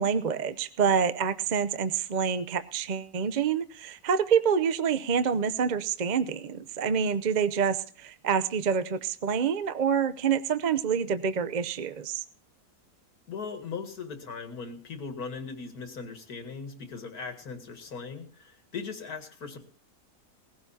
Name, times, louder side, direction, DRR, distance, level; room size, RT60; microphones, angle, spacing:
voice 1, 0.0-12.2, right 7 dB, 45° right, 12 dB, 0.6 m, -27 dB
voice 2, 13.3-19.6, left 5 dB, 70° left, 7 dB, 2.4 m, -39 dB
19.0 x 15.5 x 2.8 m, 0.43 s
omnidirectional pair, 1.6 m